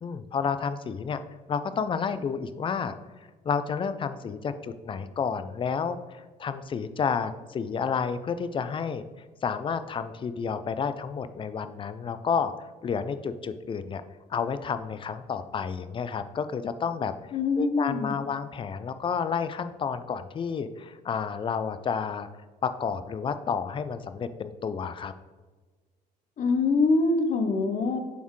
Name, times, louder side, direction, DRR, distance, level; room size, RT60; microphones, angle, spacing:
voice 1, 0.0-1.2 1.5-2.9 3.4-9.0 9.4-14.0 14.3-17.1 17.6-22.3 22.6-25.1, left 6 dB, 30° left, 12 dB, 0.4 m, -30 dB
voice 2, 17.3-18.2 26.4-28.0, left 3 dB, 50° left, 7 dB, 0.8 m, -24 dB
6.8 x 4.4 x 3.1 m, 1.3 s
cardioid pair, 110°, 17 cm